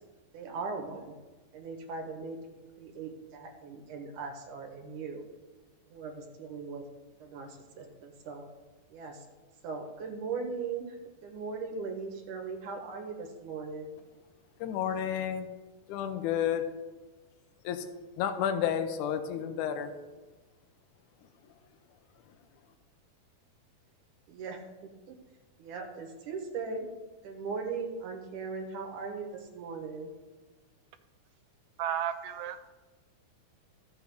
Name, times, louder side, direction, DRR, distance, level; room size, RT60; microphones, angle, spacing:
voice 1, 0.3-1.1 1.5-5.2 5.9-6.8 7.2-8.4 8.9-9.2 9.6-11.0 11.2-13.9 24.3-24.6 25.1-25.2 25.6-26.9 27.2-30.1, right 4 dB, 70° right, 3 dB, 2.3 m, -39 dB
voice 2, 14.6-15.5 15.9-16.6 17.6-17.8 18.2-19.9, left 9 dB, 80° left, 7 dB, 1.9 m, -31 dB
voice 3, 31.8-32.7, right 10 dB, 85° right, 10 dB, 2.5 m, -33 dB
14.0 x 6.0 x 3.5 m, 1.2 s
omnidirectional pair, 4.2 m